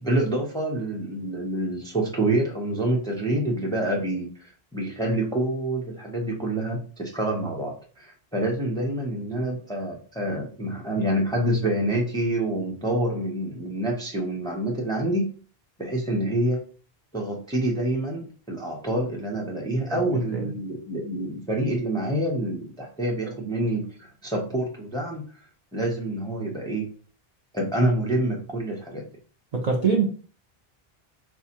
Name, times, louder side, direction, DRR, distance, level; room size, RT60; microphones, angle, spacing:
voice 1, 0.0-15.3 15.8-16.6 17.1-25.2 25.7-26.9 27.5-29.1, right 1 dB, 5° left, 0.6 m, -27 dB
voice 2, 19.9-20.4 23.4-23.5 29.5-30.1, right 5 dB, 50° right, 0.6 m, -24 dB
4.1 x 2.3 x 2.8 m
omnidirectional pair, 1.0 m